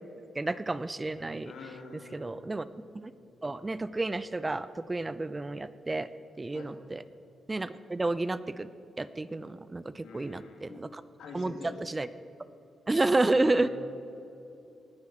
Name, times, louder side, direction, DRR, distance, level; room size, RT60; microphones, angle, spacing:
voice 1, 0.3-1.5 2.1-2.7 2.9-3.1 3.4-6.1 6.4-7.0 7.5-8.7 9.0-11.0 11.3-12.1 12.9-13.7, right 2 dB, 25° right, 15 dB, 0.5 m, -30 dB
voice 2, 1.4-2.4 6.5-6.7 10.0-10.8 11.2-11.8 12.9-13.7, left 4 dB, 85° left, 3 dB, 2.2 m, -45 dB
18.5 x 9.5 x 6.1 m, 2.7 s
cardioid pair, 80°, 0 cm